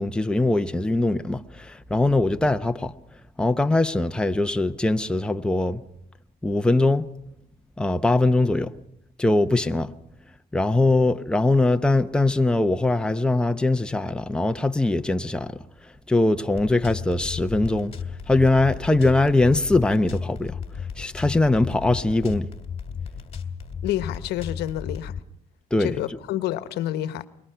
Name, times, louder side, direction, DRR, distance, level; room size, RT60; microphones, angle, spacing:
voice 1, 0.0-3.0 3.4-5.8 6.4-7.1 7.8-8.7 9.2-9.9 10.5-17.9 18.3-22.5 25.7-26.0, left 2 dB, 5° left, 0.8 m, -22 dB
sound 1, 16.5-25.2, left 6 dB, 35° left, 2.2 m, -35 dB
voice 2, 23.8-25.1 25.8-27.3, left 13 dB, 80° left, 1.0 m, -28 dB
25.0 x 22.0 x 5.7 m
cardioid pair, 110°, 17 cm